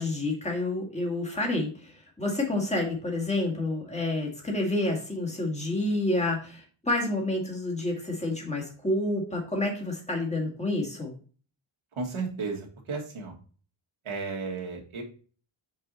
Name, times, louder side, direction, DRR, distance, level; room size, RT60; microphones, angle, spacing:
voice 1, 0.0-11.1, left 2 dB, 15° left, -1 dB, 1.9 m, -29 dB
voice 2, 12.0-13.3 14.0-15.0, right 4 dB, 75° right, 0 dB, 1.8 m, -34 dB
5.6 x 4.8 x 4.0 m, 0.40 s
wide cardioid pair, 150°, 49 cm